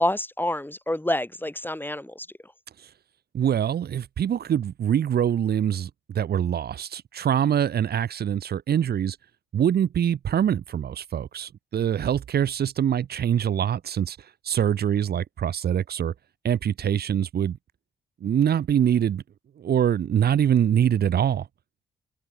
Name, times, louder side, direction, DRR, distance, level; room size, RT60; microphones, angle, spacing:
voice 1, 0.0-2.3, left 1 dB, 10° left, 6.3 m, -27 dB
voice 2, 3.3-9.2 9.5-16.1 16.4-17.6 18.2-19.2 19.6-21.5, right 9 dB, 65° right, 2.4 m, -24 dB
hypercardioid pair, 40°, 17 cm